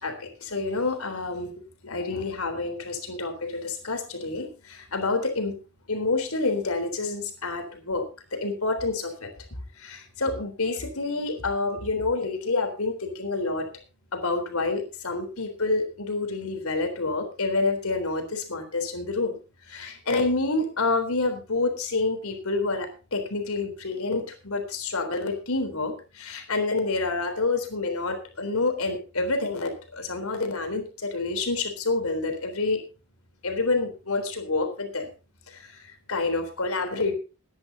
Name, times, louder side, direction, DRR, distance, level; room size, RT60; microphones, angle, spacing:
voice 1, 0.0-1.5 1.8-5.5 5.9-9.3 9.8-13.7 14.1-19.4 19.6-32.8 33.4-35.1 35.5-35.8 36.1-37.1, left 3 dB, 80° left, 6 dB, 3.8 m, -28 dB
21.0 x 10.5 x 2.9 m, 0.31 s
head